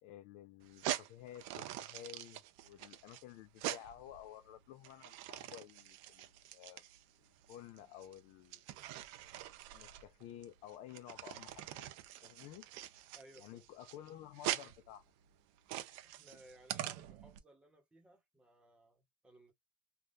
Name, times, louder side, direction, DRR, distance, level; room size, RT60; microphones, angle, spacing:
voice 1, 0.0-6.8 7.5-8.6 9.7-11.9 12.2-12.7 13.4-15.0, left 11 dB, 60° left, 0.5 m, -53 dB
sound 1, 0.6-17.4, right 13 dB, 70° right, 0.6 m, -44 dB
voice 2, 13.1-13.7 16.0-19.5, right 1 dB, 10° right, 1.0 m, -61 dB
3.4 x 2.3 x 2.5 m
cardioid pair, 180°, 14 cm